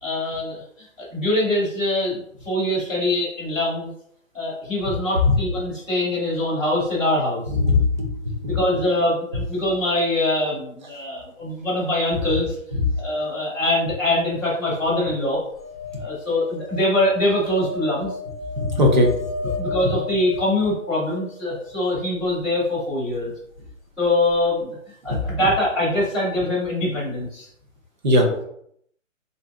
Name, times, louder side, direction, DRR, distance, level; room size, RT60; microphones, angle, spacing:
voice 1, 0.0-0.6 1.0-3.9 4.3-7.4 8.5-12.6 13.0-15.4 16.0-18.1 19.6-23.3 24.0-24.8 25.0-27.5, left 1 dB, ahead, -15 dB, 0.8 m, -23 dB
voice 2, 7.5-8.6 12.8-12.9 18.6-19.1 19.4-19.6 25.1-25.2 28.0-28.3, left 2 dB, 35° right, 1 dB, 0.7 m, -19 dB
sound 1, 15.5-21.7 24.0-24.1 24.3-24.4, left 3 dB, 30° left, 0.4 m, -34 dB
3.2 x 2.7 x 3.5 m, 0.69 s
hypercardioid pair, 165°, 40 cm